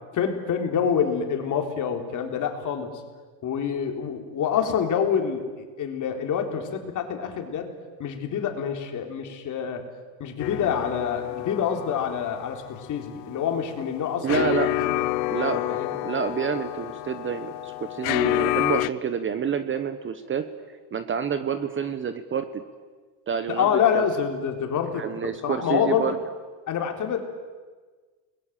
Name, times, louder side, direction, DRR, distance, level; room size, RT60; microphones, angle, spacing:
voice 1, 0.1-3.0 3.4-7.7 8.0-9.8 10.2-15.0 15.5-15.9 23.5-26.1 26.7-27.2, left 7 dB, 35° left, 5 dB, 3.7 m, -27 dB
sound 1, 10.4-18.9, left 17 dB, 80° left, 0.7 m, -29 dB
voice 2, 14.2-14.7 15.3-15.8 16.0-20.5 20.9-22.6 23.3-24.0 25.0-26.2, right 7 dB, 25° right, 11 dB, 1.2 m, -28 dB
30.0 x 21.5 x 7.5 m, 1.4 s
supercardioid pair, 125°, 49 cm